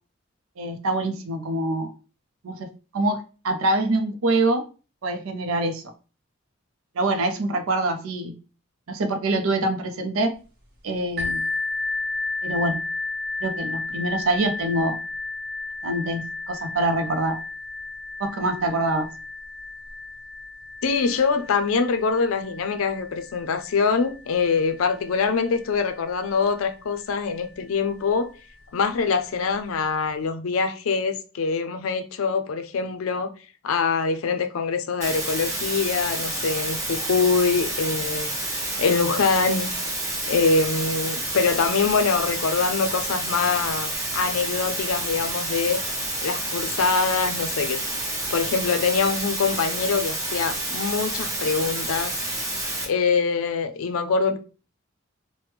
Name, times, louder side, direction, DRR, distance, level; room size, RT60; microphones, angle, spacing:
voice 1, 0.6-1.9 2.4-2.7 2.9-3.2 3.4-4.6 5.0-5.8 7.0-8.3 8.9-10.3 10.8-11.4 12.4-12.8 13.4-15.0 15.8-17.4 18.2-19.1, right 2 dB, 85° right, 0.5 m, -25 dB
sound 1, 11.2-26.7 27.5-27.6 28.1-28.2, left 3 dB, 50° right, 0.9 m, -33 dB
voice 2, 20.8-28.3 28.7-33.3 33.6-38.3 38.8-39.7 40.3-45.8 46.2-47.8 48.3-52.1 52.8-54.4, left 5 dB, 85° left, 0.4 m, -24 dB
sound 2, 35.0-52.9, right 1 dB, 15° right, 0.8 m, -29 dB
3.3 x 2.1 x 3.0 m
head